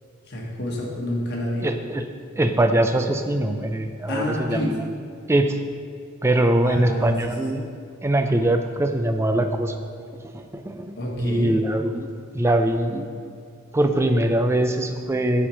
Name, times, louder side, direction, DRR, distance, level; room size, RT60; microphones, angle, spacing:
voice 1, 0.3-1.7 4.1-4.8 6.6-7.2 11.0-11.6, left 1 dB, 55° left, -2 dB, 1.3 m, -28 dB
voice 2, 1.6-2.1 2.4-4.8 5.3-5.6 6.2-7.7 8.0-9.8 10.3-12.1 12.3-13.1 13.7-15.5, right 1 dB, 15° right, 6 dB, 0.3 m, -22 dB
7.2 x 4.4 x 4.9 m, 2.3 s
head